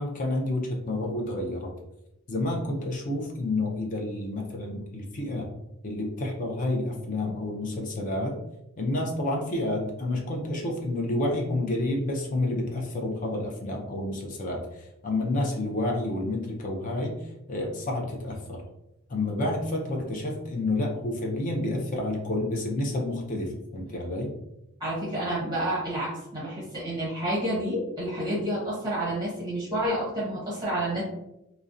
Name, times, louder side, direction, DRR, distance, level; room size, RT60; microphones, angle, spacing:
voice 1, 0.0-1.7 2.3-5.5 5.8-8.4 8.8-17.2 17.5-18.6 19.1-24.4, left 2 dB, 40° left, 0 dB, 0.4 m, -29 dB
voice 2, 24.8-31.0, right 1 dB, 20° right, -8 dB, 0.7 m, -29 dB
2.4 x 2.0 x 2.5 m, 0.87 s
head